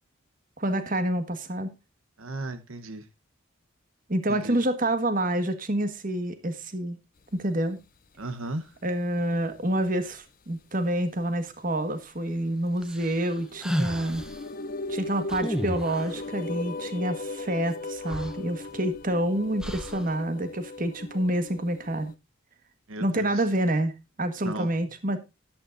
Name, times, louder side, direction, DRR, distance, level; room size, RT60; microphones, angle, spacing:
voice 1, 0.6-1.7 4.1-7.0 7.3-7.8 8.8-14.2 14.9-22.1 23.0-23.9 24.2-25.2, right 1 dB, 40° right, 1.6 m, -28 dB
voice 2, 2.2-3.1 4.3-4.6 8.2-8.7 22.9-23.5 24.4-24.7, right 2 dB, 80° right, 1.1 m, -35 dB
sound 1, 8.2-8.3 8.7-8.8 9.2-10.1 10.9-11.0 12.8-12.9 13.3-22.1, left 2 dB, 40° left, 0.6 m, -37 dB
sound 2, 12.8-14.4 15.3-16.2 17.7-17.8 18.1-19.1 19.6-20.1, equal, 5° right, 0.8 m, -32 dB
13.0 x 12.0 x 2.6 m
head